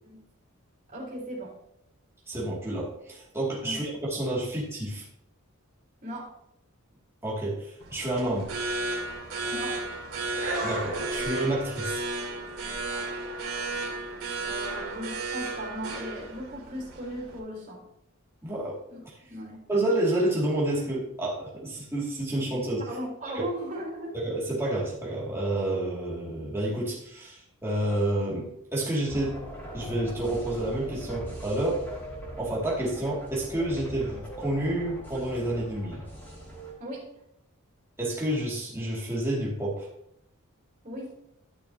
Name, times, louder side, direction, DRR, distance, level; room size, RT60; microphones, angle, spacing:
voice 1, 0.9-1.5 3.6-3.8 6.0-6.3 9.5-9.8 14.5-17.8 18.9-19.0 19.3-19.6 22.9-24.2 36.8-37.0 40.8-41.1, equal, 35° right, -5 dB, 3.4 m, -37 dB
voice 2, 2.3-5.0 7.2-8.5 10.6-12.0 18.4-18.7 19.0-19.2 19.7-22.9 23.3-23.4 24.1-29.4 29.7-31.8 32.4-36.0 38.0-39.9, right 1 dB, 10° right, -6 dB, 2.3 m, -29 dB
sound 1, 7.8-17.4, right 2 dB, 80° right, 2.3 m, -33 dB
sound 2, 29.1-36.7, right 1 dB, 10° left, 2.5 m, -41 dB
12.0 x 6.4 x 2.8 m, 0.77 s
head